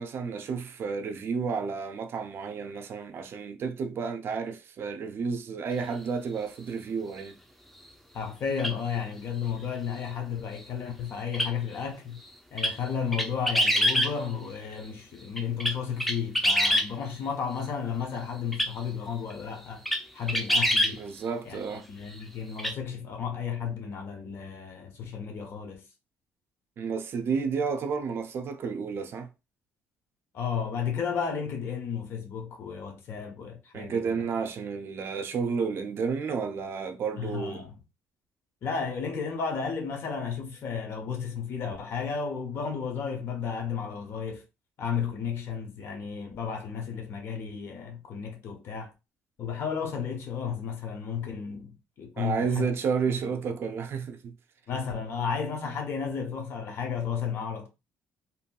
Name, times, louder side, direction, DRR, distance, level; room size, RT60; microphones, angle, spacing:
voice 1, 0.0-7.3 20.9-21.9 26.8-29.3 33.7-37.6 52.2-54.3, right 5 dB, 55° right, 0.5 m, -31 dB
voice 2, 8.1-12.2 12.5-19.8 20.1-21.0 21.4-25.9 30.3-34.3 37.2-37.8 38.6-44.4 44.8-48.9 49.4-52.7 53.0-53.3 54.7-57.7, left 6 dB, 60° left, 0.9 m, -33 dB
sound 1, 8.6-8.7 11.3-11.5 12.6-12.7 13.1-14.1 15.4-16.9 18.5-18.7 19.3-19.4 19.9-20.0 20.3-20.9 22.6-22.7, equal, 5° left, 0.5 m, -24 dB
3.0 x 2.6 x 2.2 m
cardioid pair, 95°, 5 cm